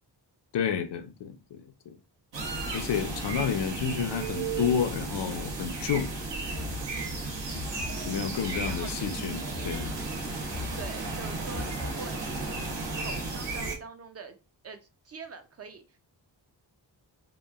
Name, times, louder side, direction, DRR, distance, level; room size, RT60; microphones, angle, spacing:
voice 1, 0.5-2.0 2.7-6.1 8.1-9.9, left 8 dB, 75° left, 0.5 m, -30 dB
sound 1, 2.3-13.8, right 3 dB, 90° right, 0.9 m, -34 dB
Drum kit, 6.5-12.5, left 2 dB, 65° right, 1.0 m, -41 dB
voice 2, 10.8-12.4 13.0-14.4 14.6-14.8 15.0-16.0, right 5 dB, 40° right, 0.4 m, -44 dB
2.9 x 2.4 x 2.3 m
cardioid pair, 85°, 42 cm